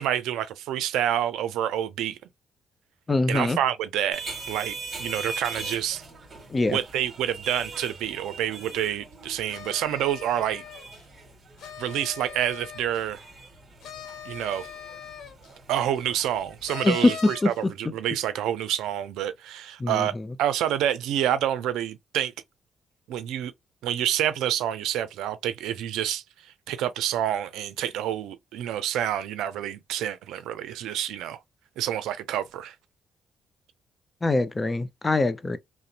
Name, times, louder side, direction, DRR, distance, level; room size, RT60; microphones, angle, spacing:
voice 1, 0.0-2.2 3.3-4.2 4.5-6.0 6.7-10.6 11.8-13.2 14.2-14.7 15.7-20.1 20.4-22.3 23.1-23.5 23.8-26.2 26.7-31.4 31.8-32.7, right 11 dB, 90° right, 0.4 m, -28 dB
voice 2, 3.1-3.6 6.5-6.8 16.8-17.1 17.4-17.5 19.8-20.1 34.2-35.6, left 2 dB, 20° left, 0.5 m, -23 dB
sound 1, 4.1-16.8, right 3 dB, 40° right, 1.4 m, -41 dB
sound 2, 9.5-11.0 11.6-13.1 13.8-15.5 16.6-17.6, left 8 dB, 75° left, 1.0 m, -41 dB
2.4 x 2.0 x 2.8 m
cardioid pair, 90°, 0 cm